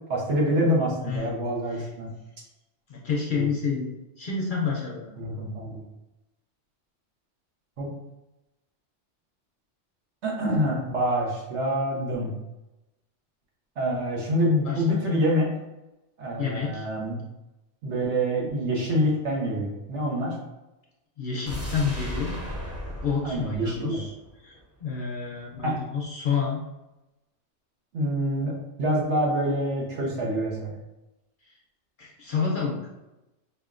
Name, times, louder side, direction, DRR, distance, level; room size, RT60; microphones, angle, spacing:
voice 1, 0.0-2.1 3.3-3.5 5.2-5.8 7.8-7.9 10.2-12.3 13.8-15.5 16.2-17.2 17.8-20.4 23.2-24.0 25.6-25.8 27.9-30.7, equal, 70° right, -3 dB, 1.2 m, -26 dB
voice 2, 1.0-1.4 1.8-1.9 2.9-3.9 4.2-5.1 14.6-15.0 16.4-16.9 21.2-22.4 23.0-24.1 24.4-26.6 32.0-32.8, left 5 dB, 55° left, -2 dB, 0.6 m, -29 dB
sound 1, 21.5-24.6 24.9-25.0, equal, 20° right, 0.4 m, -36 dB
4.9 x 2.5 x 2.4 m, 0.98 s
omnidirectional pair, 1.2 m